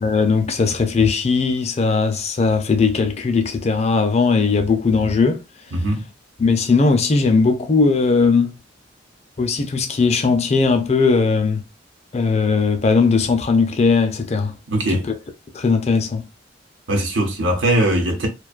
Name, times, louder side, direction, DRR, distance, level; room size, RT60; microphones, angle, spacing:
voice 1, 0.0-5.4 6.4-8.6 9.4-11.6 12.1-14.5 15.1-15.2 15.5-16.2, left 4 dB, 35° left, 0.4 m, -18 dB
voice 2, 5.7-6.1 14.7-15.1 16.9-18.3, right 1 dB, 85° right, 0.9 m, -20 dB
2.5 x 2.2 x 2.3 m
head